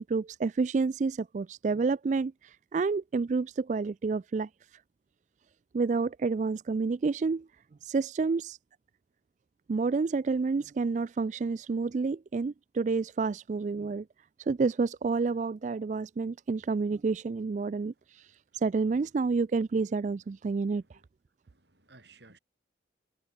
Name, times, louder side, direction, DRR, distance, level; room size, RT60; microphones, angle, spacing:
voice 1, 0.0-4.8 5.7-7.5 7.8-8.6 9.7-14.1 14.4-21.0, right 4 dB, 40° right, 0.3 m, -29 dB
voice 2, 21.5-22.4, right 3 dB, 70° right, 5.4 m, -57 dB
head